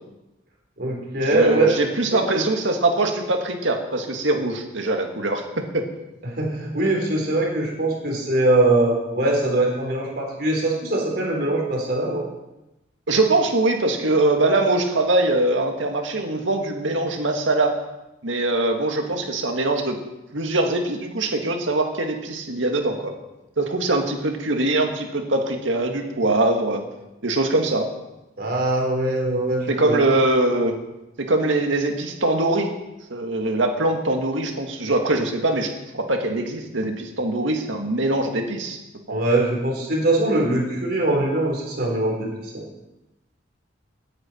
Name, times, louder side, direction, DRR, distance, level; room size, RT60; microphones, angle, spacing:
voice 1, 0.8-2.4 6.2-12.2 28.4-30.2 39.1-42.5, right 2 dB, 55° right, -1 dB, 4.0 m, -22 dB
voice 2, 1.3-5.5 5.7-5.8 13.1-17.7 18.2-20.0 20.3-23.1 23.6-26.8 27.2-27.9 29.7-30.8 31.2-32.7 33.1-38.8 39.1-39.2, right 2 dB, 85° right, 3 dB, 2.0 m, -22 dB
17.5 x 9.6 x 4.5 m, 0.99 s
head